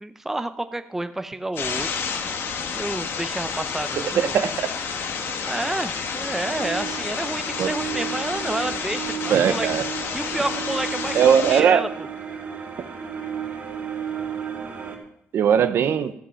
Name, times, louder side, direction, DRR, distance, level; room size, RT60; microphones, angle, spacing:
voice 1, 0.0-2.0 2.7-4.3 5.5-9.7 10.1-11.9, right 2 dB, 10° right, 9 dB, 0.7 m, -29 dB
sound 1, 1.6-11.6, left 6 dB, 65° left, 1.3 m, -30 dB
sound 2, 3.9-15.0, right 7 dB, 40° right, 2.8 m, -34 dB
voice 2, 4.0-4.7 7.6-7.7 9.3-9.9 11.1-11.9 15.3-16.1, right 8 dB, 65° right, 12 dB, 0.8 m, -19 dB
14.0 x 7.6 x 5.7 m, 0.72 s
cardioid pair, 140°, 4 cm